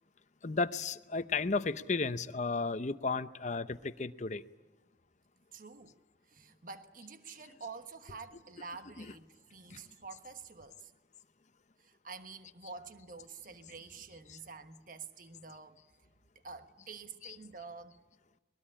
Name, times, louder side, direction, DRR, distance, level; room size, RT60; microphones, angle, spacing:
voice 1, 0.4-4.4 9.0-9.2 9.7-9.8 14.3-14.4 17.2-17.4, left 4 dB, 40° left, 0.7 m, -34 dB
voice 2, 5.5-5.9 6.3-10.9 11.8-15.8 16.4-18.0, right 4 dB, 50° right, 1.3 m, -48 dB
22.0 x 22.0 x 10.0 m
head